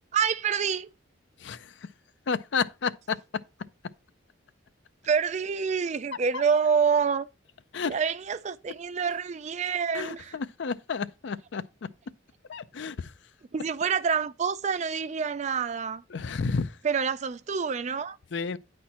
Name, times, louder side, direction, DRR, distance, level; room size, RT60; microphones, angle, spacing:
voice 1, 0.1-0.9 5.0-7.3 7.9-10.3 13.5-16.0 16.8-18.2, right 6 dB, 35° right, 0.3 m, -27 dB
voice 2, 1.4-1.7 2.3-3.2 6.3-6.4 7.7-7.9 9.9-11.6 12.5-13.1 16.1-16.8 18.3-18.6, left 5 dB, 60° left, 0.4 m, -31 dB
9.4 x 4.4 x 4.2 m
head